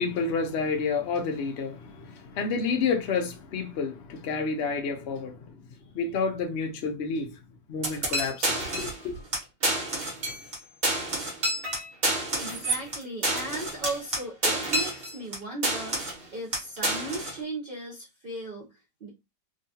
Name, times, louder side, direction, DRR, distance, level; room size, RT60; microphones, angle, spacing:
voice 1, 0.0-5.7 5.9-7.4 7.7-9.3, left 4 dB, 75° left, 0.6 m, -30 dB
sound 1, 7.8-9.0 9.3-9.4 9.6-10.6 10.8-15.4 15.6-16.2 16.5-17.4, right 1 dB, 40° right, 1.1 m, -28 dB
voice 2, 12.4-19.1, right 2 dB, 60° right, 0.5 m, -37 dB
3.6 x 2.3 x 2.7 m
omnidirectional pair, 1.9 m